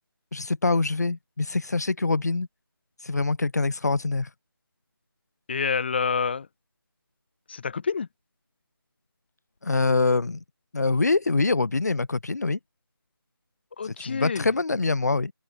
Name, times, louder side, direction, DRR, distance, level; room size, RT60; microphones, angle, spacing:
voice 1, 0.3-2.5 3.0-4.3 9.6-10.4 10.7-12.6 13.8-15.3, left 3 dB, 45° left, 2.7 m, -24 dB
voice 2, 5.5-6.5 7.5-8.1 13.8-14.5, left 5 dB, 25° left, 5.7 m, -27 dB
open air
figure-of-eight pair, 165°, 13 cm